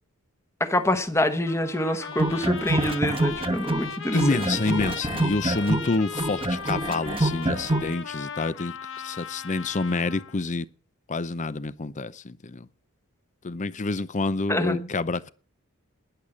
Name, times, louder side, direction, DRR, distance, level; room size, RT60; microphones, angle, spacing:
voice 1, 0.6-4.4 14.5-14.9, left 1 dB, 10° left, 1.1 m, -26 dB
Trumpet, 1.5-10.4, left 6 dB, 60° left, 1.3 m, -37 dB
sound 1, 2.1-3.9 4.2-7.9, right 2 dB, 25° right, 1.1 m, -26 dB
voice 2, 4.1-8.7 9.0-10.7 11.1-12.7 13.4-15.3, left 3 dB, 35° left, 0.6 m, -27 dB
11.5 x 10.5 x 7.2 m
head